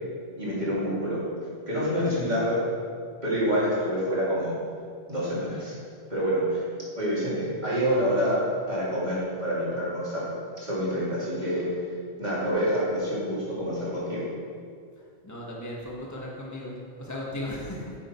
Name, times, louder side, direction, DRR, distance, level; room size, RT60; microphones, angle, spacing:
voice 1, 0.4-1.2 1.7-2.6 3.2-4.6 5.1-5.8 6.1-6.6 7.0-8.4 8.7-10.3 10.6-11.7 12.2-14.3, equal, 40° right, -8 dB, 3.0 m, -27 dB
voice 2, 15.2-18.1, left 1 dB, 15° left, -3 dB, 1.5 m, -36 dB
9.1 x 8.8 x 4.5 m, 2.2 s
omnidirectional pair, 1.2 m